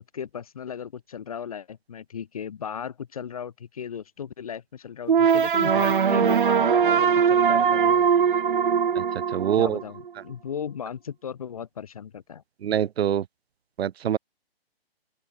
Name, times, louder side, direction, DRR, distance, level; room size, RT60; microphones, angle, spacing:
voice 1, 0.1-8.1 9.5-12.4, left 8 dB, 35° left, 3.4 m, -36 dB
sound 1, 5.1-10.1, right 7 dB, 55° right, 0.8 m, -21 dB
voice 2, 9.3-9.8 12.6-13.2 13.8-14.2, right 10 dB, 80° right, 0.5 m, -24 dB
open air
hypercardioid pair, 180°, 30 cm